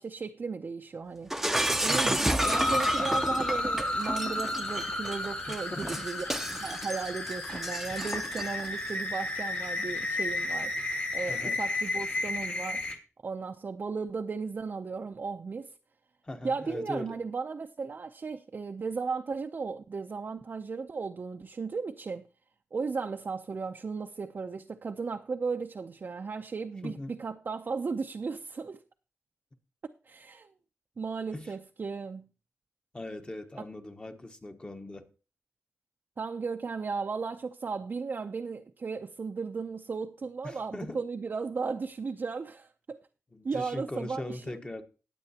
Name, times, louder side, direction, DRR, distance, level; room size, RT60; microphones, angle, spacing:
voice 1, 0.0-1.3 1.8-10.7 11.1-12.8 13.2-15.7 16.4-22.3 22.7-28.8 30.0-30.5 31.0-32.3 36.2-43.0 43.4-44.4, right 4 dB, 45° right, 0.5 m, -35 dB
Shatter, 1.3-8.7, right 1 dB, 5° right, 0.7 m, -31 dB
voice 2, 1.9-2.2 5.5-6.0 11.3-11.6 16.2-17.2 26.8-27.1 31.3-31.5 32.9-35.1 40.4-41.0 43.3-44.8, left 1 dB, 20° left, 1.1 m, -40 dB
sound 1, 2.4-13.0, left 2 dB, 40° left, 1.9 m, -32 dB
19.0 x 7.7 x 2.8 m
wide cardioid pair, 105°, 5 cm